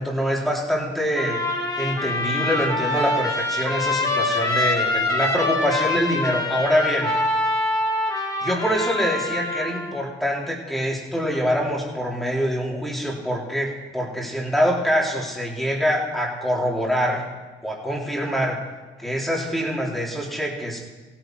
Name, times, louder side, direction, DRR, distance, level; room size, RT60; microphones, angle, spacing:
voice 1, 0.0-1.4 1.8-7.1 8.4-17.2 17.6-18.6 19.0-20.8, equal, ahead, -3 dB, 3.4 m, -25 dB
Trumpet, 1.2-9.9, left 2 dB, 20° left, 2.9 m, -25 dB
16.5 x 9.2 x 4.7 m, 1.3 s
cardioid pair, 90°, 20 cm